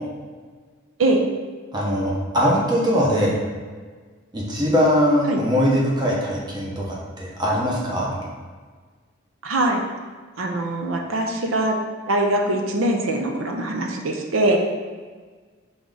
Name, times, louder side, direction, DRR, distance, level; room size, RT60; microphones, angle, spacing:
voice 1, 1.7-3.4 4.3-6.8 7.2-8.1, equal, 20° right, -4 dB, 0.8 m, -21 dB
voice 2, 9.4-9.8 10.4-11.8 12.1-14.6, right 1 dB, 80° right, 2 dB, 0.6 m, -22 dB
3.8 x 3.4 x 3.8 m, 1.5 s
head